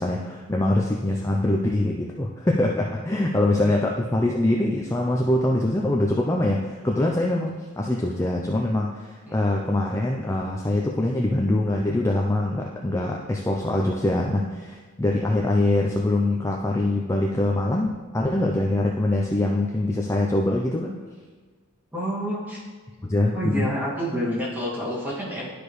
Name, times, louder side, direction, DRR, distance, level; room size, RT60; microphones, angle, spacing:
voice 1, 0.0-20.9 23.0-23.7, left 1 dB, 15° left, -1 dB, 0.4 m, -23 dB
voice 2, 21.9-22.6 23.3-25.5, equal, 10° right, -7 dB, 2.0 m, -28 dB
11.5 x 5.0 x 3.1 m, 1.4 s
head